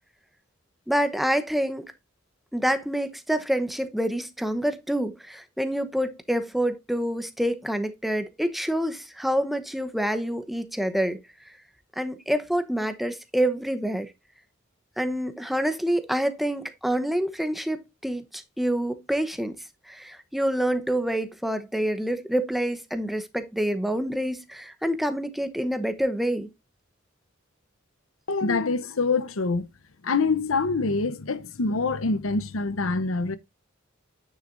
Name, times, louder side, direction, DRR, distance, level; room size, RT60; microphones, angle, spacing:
voice 1, 0.9-1.9 2.5-11.2 12.0-14.1 15.0-19.6 19.9-26.5, equal, ahead, 0.9 m, -27 dB
voice 2, 28.3-29.7 30.0-33.4, left 3 dB, 90° left, 0.9 m, -25 dB
9.5 x 6.6 x 2.6 m
head